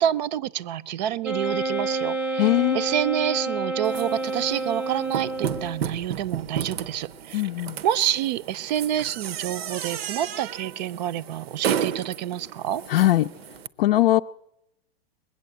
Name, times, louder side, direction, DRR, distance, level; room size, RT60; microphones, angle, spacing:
voice 1, 0.0-2.5 2.7-7.4 7.8-12.8, right 11 dB, 45° right, 17 dB, 0.5 m, -28 dB
Wind instrument woodwind instrument, 1.2-5.9, right 2 dB, 5° right, 0.6 m, -29 dB
voice 2, 2.4-2.8 7.3-7.8 12.9-13.3 13.8-14.2, left 15 dB, 65° left, 6 dB, 0.5 m, -20 dB
sound 1, 3.8-13.7, right 8 dB, 75° right, 0.8 m, -33 dB
20.5 x 8.5 x 7.9 m, 0.81 s
hypercardioid pair, 140°, 31 cm